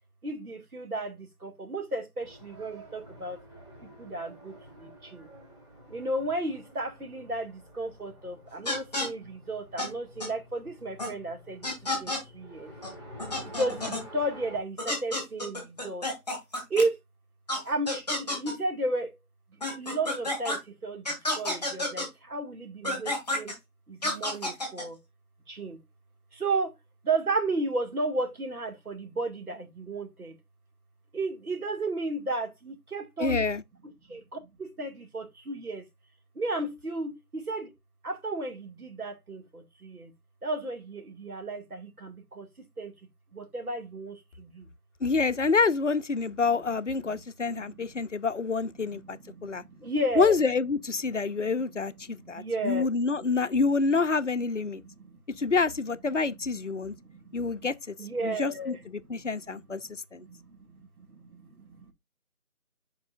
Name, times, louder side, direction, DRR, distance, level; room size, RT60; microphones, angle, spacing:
voice 1, 0.2-3.4 3.8-5.3 5.9-11.7 12.0-12.7 13.4-16.1 16.7-17.0 17.6-19.1 19.8-23.5 23.9-25.0 25.5-25.8 26.3-26.7 27.0-30.4 31.1-33.5 33.8-35.9 36.4-37.7 38.0-40.1 40.4-42.9 43.3-44.7 47.0-47.2 47.5-47.9 48.9-50.3 51.4-51.7 52.1-52.9 54.7-55.5 56.9-57.7 58.0-58.8 59.1-59.6 60.1-61.9, right 2 dB, 75° right, 2.3 m, -34 dB
Race car auto racing, 2.2-14.6, equal, 20° right, 4.4 m, -49 dB
sound 1, 8.7-9.1 9.8-9.9 10.2-10.3 11.0-11.1 11.6-12.2 12.8-12.9 13.2-14.0 14.8-16.8 17.5-17.6 17.9-18.5 19.6-20.6 21.1-22.1 22.8-23.5 24.0-24.8, left 1 dB, 5° left, 1.9 m, -30 dB
voice 2, 33.2-33.6 45.0-49.6 50.2-54.8 55.4-56.9 57.3-58.0 58.2-60.2, left 4 dB, 55° left, 0.6 m, -27 dB
10.5 x 4.7 x 2.5 m
figure-of-eight pair, 180°, 44 cm